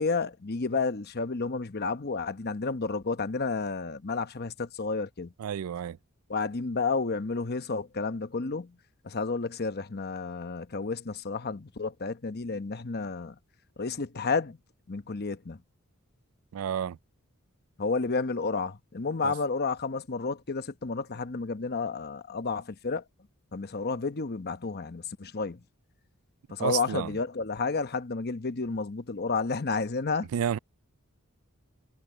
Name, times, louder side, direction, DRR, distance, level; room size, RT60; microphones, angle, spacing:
voice 1, 0.0-5.3 6.3-8.8 9.0-13.4 13.8-14.6 14.9-15.6 17.8-23.0 23.5-25.6 26.5-30.3, left 4 dB, 45° left, 0.9 m, -31 dB
voice 2, 5.4-6.0 16.5-17.0 19.2-19.3 26.6-27.1 30.3-30.6, right 8 dB, 75° right, 0.3 m, -30 dB
head